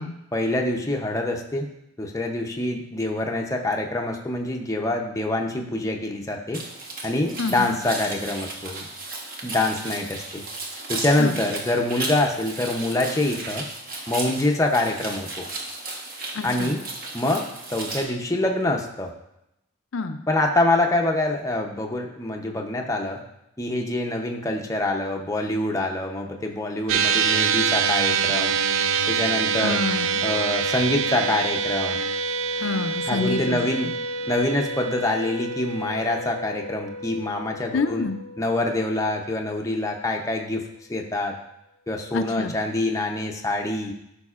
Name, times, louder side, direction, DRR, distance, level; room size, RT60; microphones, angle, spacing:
voice 1, 0.3-1.7 2.0-6.6 7.0-8.9 9.4-10.4 10.9-13.6 14.1-15.4 16.4-16.8 17.1-19.1 20.3-23.2 23.6-28.6 29.1-29.8 30.2-32.1 33.1-33.9 34.3-38.1 38.4-40.6 40.9-41.3 41.9-43.9, left 2 dB, 15° left, 1 dB, 0.6 m, -25 dB
sound 1, 6.5-18.0, right 2 dB, 45° right, 1.2 m, -35 dB
voice 2, 7.4-7.8 11.2-11.4 16.3-16.8 19.9-20.2 29.6-30.2 32.6-33.6 33.8-33.9 37.7-38.2 42.1-42.5, left 3 dB, 70° left, 7 dB, 0.5 m, -27 dB
sound 2, 26.9-39.4, right 5 dB, 85° right, 0.4 m, -26 dB
12.5 x 5.4 x 2.4 m, 0.84 s
head